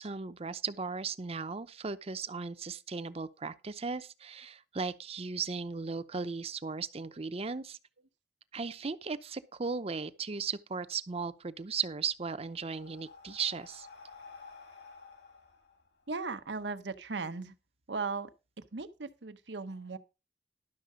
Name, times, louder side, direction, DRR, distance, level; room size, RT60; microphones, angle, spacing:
voice 1, 0.0-7.8 8.5-13.9, right 5 dB, 35° right, 0.7 m, -36 dB
Breathing, 12.0-16.6, left 4 dB, 70° left, 2.5 m, -53 dB
voice 2, 16.1-17.5 17.9-18.3 18.7-20.0, right 4 dB, 85° right, 1.0 m, -37 dB
12.0 x 6.5 x 5.0 m
head